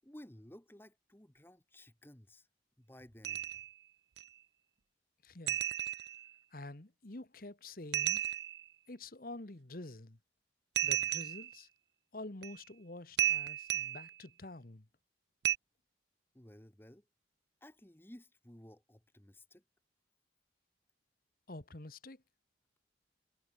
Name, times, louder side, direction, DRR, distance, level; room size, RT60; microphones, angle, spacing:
voice 1, 0.0-2.5 2.8-3.6 16.3-17.1 17.6-19.6, left 1 dB, 10° left, 1.1 m, -56 dB
sound 1, 3.2-3.7 4.2-4.3 5.5-6.3 7.9-8.7 10.8-11.6 12.4-12.6 13.2-14.1 15.4-15.6, right 12 dB, 65° right, 0.5 m, -33 dB
voice 2, 5.2-5.7 6.5-8.2 8.9-10.2 10.8-11.7 12.1-14.8 21.5-22.2, left 2 dB, 50° left, 1.4 m, -48 dB
head